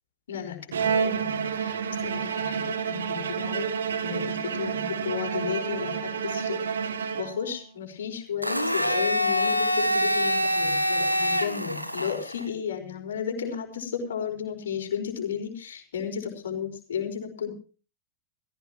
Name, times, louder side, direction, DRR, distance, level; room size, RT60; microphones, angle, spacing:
voice 1, 0.3-3.7 4.0-6.7 7.2-17.5, left 8 dB, 65° left, 3 dB, 5.2 m, -33 dB
Bowed string instrument, 0.7-7.7, right 6 dB, 65° right, 1.4 m, -29 dB
Domestic sounds home sounds, 8.4-12.4, equal, 90° right, 1.3 m, -25 dB
19.0 x 17.0 x 3.1 m, 0.38 s
figure-of-eight pair, 90°, 0 cm